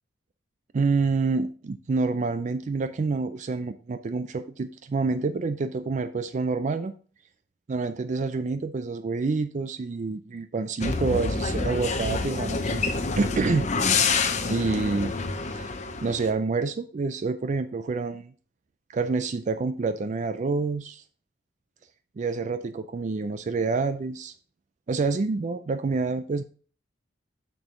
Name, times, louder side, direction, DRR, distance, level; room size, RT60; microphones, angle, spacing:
voice 1, 0.7-6.9 7.7-12.8 13.2-13.7 14.5-15.1 15.5-15.7 16.0-18.3 18.9-21.0 22.2-24.3 24.9-26.4, right 4 dB, 35° right, 11 dB, 0.3 m, -27 dB
sound 1, 10.8-16.3, left 4 dB, 35° left, 0.8 m, -27 dB
6.7 x 6.1 x 3.7 m, 0.41 s
head